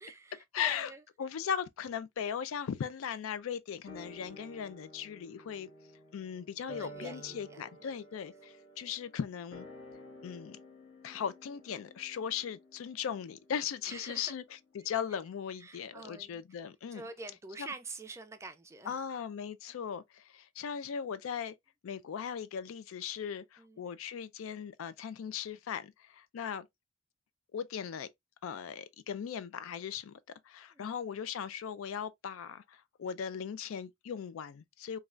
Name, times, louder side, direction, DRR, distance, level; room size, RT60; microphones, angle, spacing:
voice 1, 0.0-1.0 6.8-7.9 13.9-14.3 14.8-14.9 15.6-16.4 16.9-19.0 23.6-23.9 30.7-30.9, right 3 dB, 15° right, 0.3 m, -47 dB
voice 2, 0.5-0.9 1.2-5.7 6.1-9.7 10.2-10.6 11.0-14.4 14.7-17.0 17.6-17.7 18.9-21.5 21.8-26.7 27.5-28.1 28.4-30.2 30.5-35.0, left 7 dB, 85° left, 0.3 m, -38 dB
sound 1, 3.9-14.5 14.7-14.8, equal, 70° left, 1.3 m, -52 dB
3.1 x 2.3 x 2.4 m
head